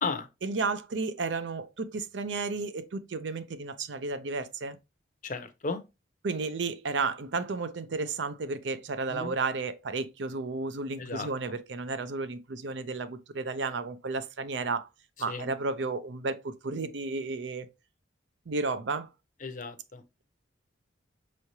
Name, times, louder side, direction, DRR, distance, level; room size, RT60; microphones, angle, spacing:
voice 1, 0.4-4.8 6.2-14.9 15.2-17.7 18.5-19.1, right 3 dB, 70° right, 0.5 m, -33 dB
voice 2, 5.2-5.8 9.1-9.3 11.0-11.3 15.3-15.5 19.4-20.0, left 4 dB, 40° left, 0.6 m, -34 dB
5.6 x 3.1 x 2.7 m
head